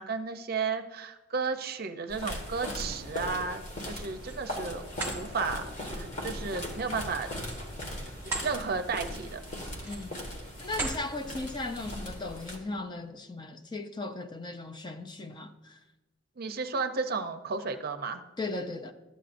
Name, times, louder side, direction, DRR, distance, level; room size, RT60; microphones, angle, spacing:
voice 1, 0.0-4.8 5.1-5.6 5.9-7.3 8.2-9.4 16.4-18.2, right 4 dB, 50° right, 0.6 m, -33 dB
sound 1, 2.1-12.6, equal, 40° left, 1.6 m, -39 dB
sound 2, 3.9-4.4 4.8-5.2 7.3-8.5 9.0-9.2 9.7-10.2 10.7-11.0, right 2 dB, 10° right, 1.6 m, -37 dB
voice 2, 9.8-10.2 10.6-15.8 18.4-18.9, left 2 dB, 25° left, 0.4 m, -37 dB
12.5 x 8.2 x 2.6 m
head